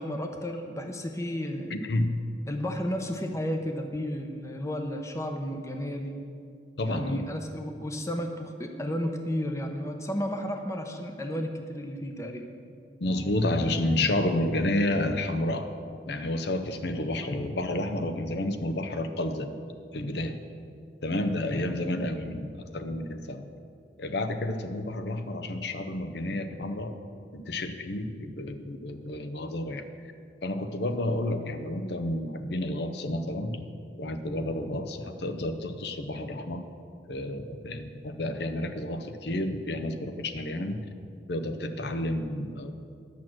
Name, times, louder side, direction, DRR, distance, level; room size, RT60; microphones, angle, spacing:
voice 1, 0.0-1.7 2.5-6.2 6.8-12.5 21.5-21.8, equal, 15° left, 4 dB, 0.7 m, -33 dB
voice 2, 1.7-2.2 6.8-7.3 13.0-15.7 16.1-19.6 19.9-20.4 21.0-23.5 24.0-27.0 27.3-29.8 30.4-33.7 34.0-36.6 37.1-40.9 41.3-42.7, left 1 dB, 65° left, 8 dB, 0.7 m, -30 dB
11.0 x 6.1 x 7.6 m, 2.4 s
head